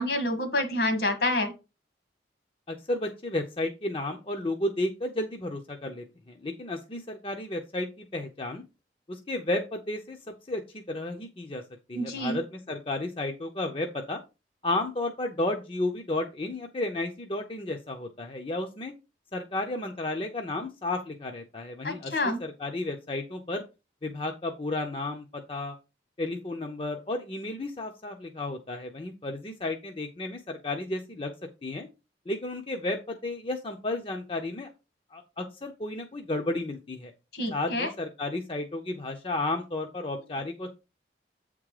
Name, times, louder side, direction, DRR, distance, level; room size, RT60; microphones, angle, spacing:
voice 1, 0.0-1.5 11.9-12.4 21.8-22.4 37.3-37.9, left 1 dB, 65° left, 7 dB, 1.6 m, -28 dB
voice 2, 2.7-8.6 9.1-10.2 10.5-11.6 11.9-14.2 14.6-18.9 19.3-23.6 24.0-25.8 26.2-31.3 31.6-31.9 32.3-34.7 35.1-37.1 37.5-40.7, left 2 dB, 30° left, 4 dB, 0.7 m, -32 dB
8.1 x 3.7 x 4.8 m, 0.28 s
head